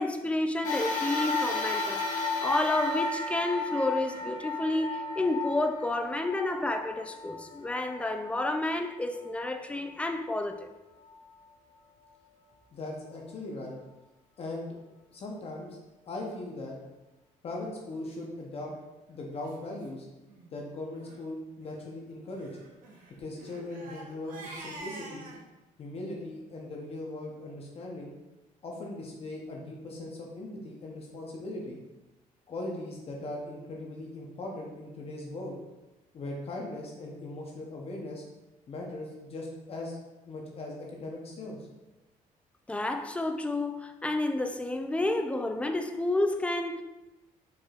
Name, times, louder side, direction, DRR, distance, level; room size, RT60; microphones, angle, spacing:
voice 1, 0.0-2.0 2.4-10.7 42.7-46.8, left 2 dB, 10° left, 0.3 m, -30 dB
sound 1, 0.6-9.3 9.9-10.0 11.1-11.2, left 3 dB, 65° left, 1.0 m, -33 dB
voice 2, 12.7-13.7 14.4-14.8 15.1-15.8 16.1-16.7 17.4-18.7 19.1-20.1 20.5-22.5 23.2-25.3 25.8-28.1 28.6-31.8 32.5-35.5 36.1-38.2 38.7-40.0 40.2-41.6, left 2 dB, 40° left, 0.8 m, -39 dB
Crying sobbing, 18.5-18.8 19.4-19.5 19.8-19.9 20.3-20.5 20.9-21.2 22.3-25.4, right 2 dB, 70° right, 1.0 m, -46 dB
4.8 x 4.4 x 2.4 m
cardioid pair, 125°, 15 cm